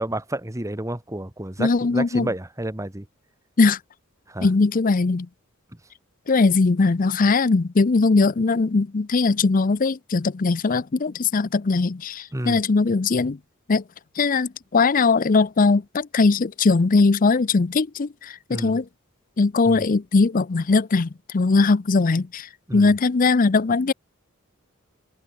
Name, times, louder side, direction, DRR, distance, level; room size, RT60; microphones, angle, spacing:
voice 1, 0.0-3.1 4.3-4.5 12.3-12.6 18.5-18.8 19.7-19.8 22.7-22.9, right 1 dB, 15° right, 1.4 m, -30 dB
voice 2, 1.6-2.3 3.6-3.8 4.4-5.3 6.3-13.4 13.7-13.8 14.2-18.8 19.4-23.9, left 4 dB, 40° left, 0.5 m, -20 dB
open air
head